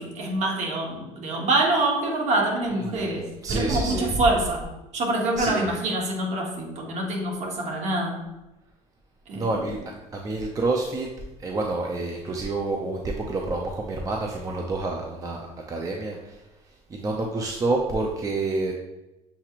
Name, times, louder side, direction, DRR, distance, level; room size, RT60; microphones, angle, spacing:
voice 1, 0.0-8.2 9.3-9.5, right 2 dB, 50° right, 0 dB, 1.2 m, -26 dB
voice 2, 3.4-4.2 5.4-5.7 9.3-9.8 10.1-11.1 11.4-16.4 16.9-18.7, right 2 dB, 25° right, 1 dB, 0.5 m, -28 dB
6.9 x 2.9 x 2.4 m, 1.0 s
cardioid pair, 110°, 15 cm